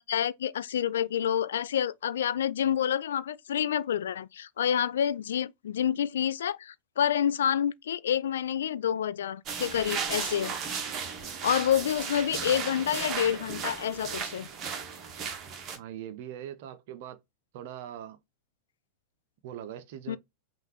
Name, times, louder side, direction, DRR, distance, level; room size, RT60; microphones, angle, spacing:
voice 1, 0.0-10.5 11.4-14.5 20.1-20.2, left 9 dB, 65° left, 0.3 m, -28 dB
sound 1, 9.5-15.8, right 6 dB, 30° right, 1.2 m, -35 dB
voice 2, 15.7-17.2 17.5-18.2 19.4-20.2, right 10 dB, 50° right, 0.8 m, -41 dB
5.7 x 2.6 x 3.3 m
figure-of-eight pair, 90°, 0 cm